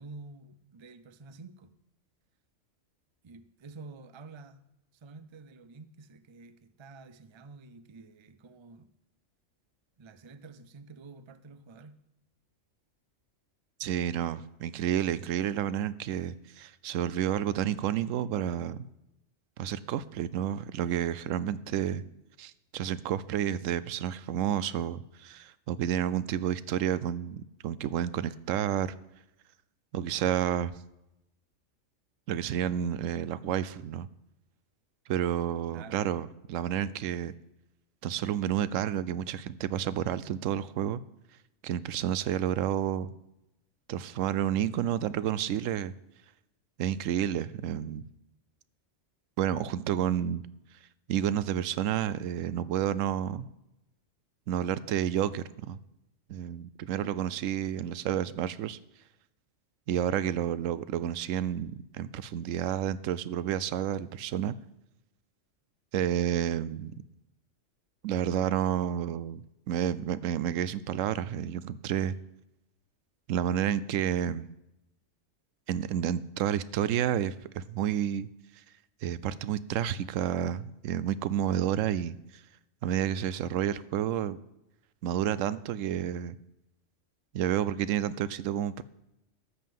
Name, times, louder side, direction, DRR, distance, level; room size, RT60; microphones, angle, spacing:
voice 1, 0.0-1.7 3.2-4.6 4.9-8.9 10.0-12.0 35.7-36.1, right 3 dB, 35° right, 0.4 m, -49 dB
voice 2, 13.8-18.8 19.6-22.0 22.4-28.9 29.9-30.7 32.3-34.1 35.1-37.3 38.0-41.0 41.6-43.1 43.9-45.9 46.8-48.0 49.4-50.4 51.1-53.5 54.5-55.8 56.3-58.8 59.9-64.5 65.9-66.9 68.0-72.1 73.3-74.5 75.7-78.3 79.0-82.2 82.8-84.4 85.0-86.4 87.3-88.8, right 10 dB, 85° right, 1.0 m, -30 dB
13.0 x 5.5 x 7.6 m
omnidirectional pair, 1.3 m